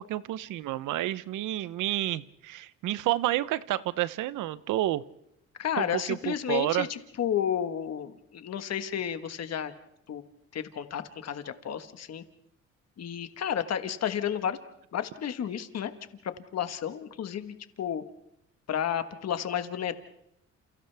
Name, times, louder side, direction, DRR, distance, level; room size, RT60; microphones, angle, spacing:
voice 1, 0.0-5.0 5.8-6.9, right 14 dB, 85° right, 17 dB, 0.8 m, -30 dB
voice 2, 5.6-9.7 10.1-10.2 10.5-12.2 13.0-14.6 14.9-15.9 16.5-18.0 18.7-19.9, left 9 dB, 55° left, 9 dB, 1.4 m, -32 dB
29.5 x 28.5 x 3.4 m, 0.79 s
cardioid pair, 90°, 30 cm